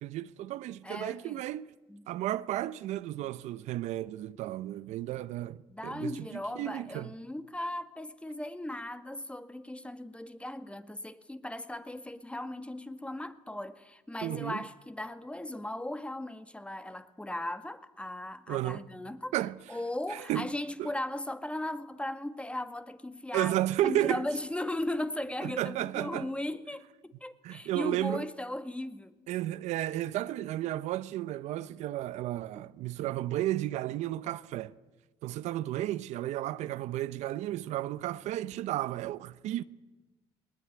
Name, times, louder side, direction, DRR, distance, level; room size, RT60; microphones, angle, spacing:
voice 1, 0.0-1.7 2.1-6.3 6.6-7.1 14.2-14.6 18.5-18.8 19.3-19.6 20.1-20.5 20.8-20.9 23.3-24.2 25.4-26.3 27.4-28.2 29.3-34.7 35.2-39.6, right 14 dB, 75° right, 0.8 m, -33 dB
voice 2, 0.8-1.5 1.9-2.1 5.7-19.3 19.7-23.5 23.8-29.2 32.6-32.7, left 1 dB, 10° left, 1.7 m, -37 dB
20.5 x 19.5 x 9.6 m
supercardioid pair, 70°, 12 cm